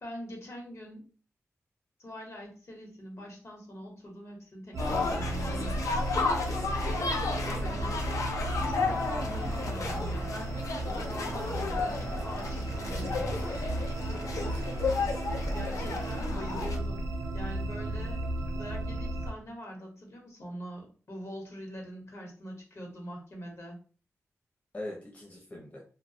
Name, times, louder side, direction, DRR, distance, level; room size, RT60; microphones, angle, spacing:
voice 1, 0.0-1.0 2.0-6.0 7.6-8.0 8.6-13.6 15.5-18.2 18.6-23.8, equal, 55° left, 0 dB, 0.9 m, -43 dB
sound 1, 4.7-19.3, right 1 dB, 70° right, 0.4 m, -34 dB
sound 2, 4.8-16.8, left 4 dB, 90° left, 0.4 m, -33 dB
voice 2, 7.3-8.1 14.5-15.0 24.7-25.8, left 1 dB, 25° left, -2 dB, 0.6 m, -43 dB
2.3 x 2.1 x 2.6 m, 0.38 s
wide cardioid pair, 95°, 5 cm